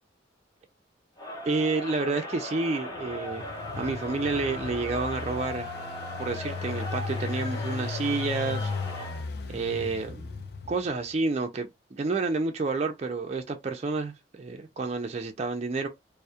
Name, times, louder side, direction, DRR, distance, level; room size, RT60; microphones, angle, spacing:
Crowd, 1.2-9.3, left 1 dB, 20° left, 0.7 m, -38 dB
voice 1, 1.5-3.5 3.8-5.7 6.2-8.7 9.5-10.4 10.7-15.9, right 3 dB, 35° right, 0.3 m, -29 dB
Engine, 3.0-11.0, left 4 dB, 55° left, 0.4 m, -36 dB
2.2 x 2.0 x 2.7 m
head